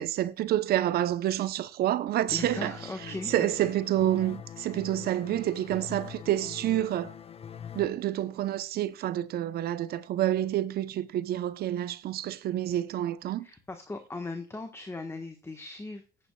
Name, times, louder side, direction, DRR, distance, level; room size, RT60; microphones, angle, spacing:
voice 1, 0.0-2.8 3.1-7.1 7.7-13.4, right 12 dB, 65° right, 0.9 m, -28 dB
sound 1, 2.3-7.9, left 8 dB, 35° left, 0.9 m, -44 dB
voice 2, 2.3-3.7 13.4-16.0, left 3 dB, 15° left, 1.4 m, -38 dB
18.0 x 8.8 x 2.4 m
cardioid pair, 110°, 17 cm